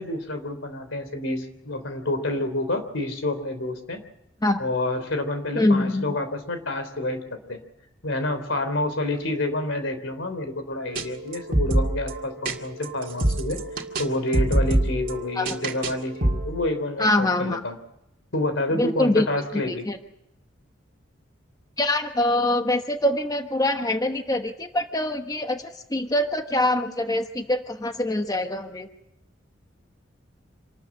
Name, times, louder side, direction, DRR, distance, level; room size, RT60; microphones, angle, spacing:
voice 1, 0.0-4.0 4.6-7.6 8.0-13.6 14.0-17.8 18.3-19.9, left 2 dB, 85° left, 9 dB, 3.3 m, -28 dB
voice 2, 5.5-6.1 15.4-15.5 17.0-17.6 18.7-19.3 19.7-20.0 21.8-28.9, left 1 dB, 20° left, 6 dB, 1.1 m, -24 dB
sound 1, 11.0-11.1 11.3-12.5 12.8-14.1 14.3-15.9 16.2-16.7, right 1 dB, 45° right, 2.2 m, -25 dB
26.5 x 13.5 x 8.8 m, 0.84 s
head